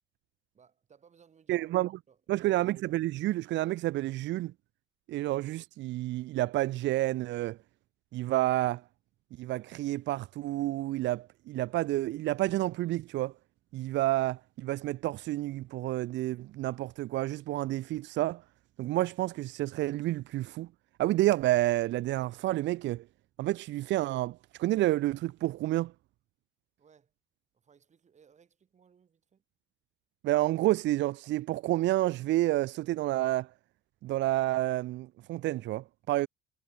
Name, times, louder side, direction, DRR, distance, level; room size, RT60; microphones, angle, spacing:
voice 1, 0.5-2.7 26.8-27.1 27.5-29.4, right 7 dB, 35° right, 5.5 m, -62 dB
voice 2, 1.5-1.9 2.3-4.5 5.1-7.6 8.1-8.8 9.4-13.3 13.7-18.4 18.8-20.7 21.0-23.1 23.4-25.9 30.2-33.5 34.0-36.3, right 16 dB, 65° right, 0.6 m, -29 dB
cardioid pair, 130°, 20 cm